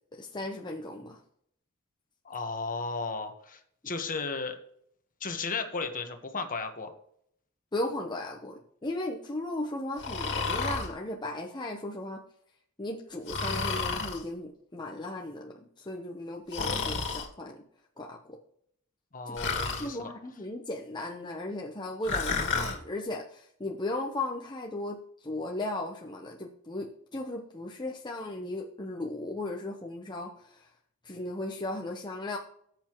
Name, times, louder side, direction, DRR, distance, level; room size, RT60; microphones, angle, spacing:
voice 1, 0.2-1.2 7.7-12.2 12.8-17.6 18.0-18.2 19.3-19.4 19.8-30.7 31.0-32.4, left 2 dB, 20° left, 0 dB, 0.9 m, -36 dB
voice 2, 2.2-4.6 5.2-6.9 19.1-20.1, left 4 dB, 40° left, 6 dB, 1.3 m, -35 dB
Breathing, 10.0-10.9 13.3-14.2 16.5-17.3 19.4-19.9 22.0-22.8, left 4 dB, 55° left, 2.2 m, -31 dB
18.0 x 8.0 x 3.1 m, 0.68 s
head